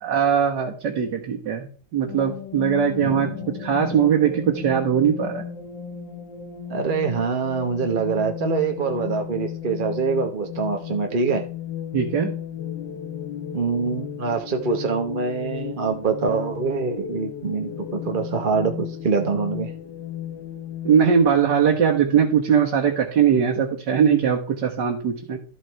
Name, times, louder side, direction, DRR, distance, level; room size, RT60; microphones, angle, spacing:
voice 1, 0.0-3.3 3.6-5.5 11.9-12.3 20.8-25.4, right 7 dB, 70° right, 0 dB, 2.0 m, -20 dB
sound 1, 2.1-21.3, left 8 dB, 75° left, 1.8 m, -34 dB
voice 2, 3.0-3.4 6.7-11.4 13.5-19.7, right 5 dB, 40° right, 4 dB, 0.8 m, -25 dB
12.5 x 6.4 x 4.5 m, 0.40 s
omnidirectional pair, 1.9 m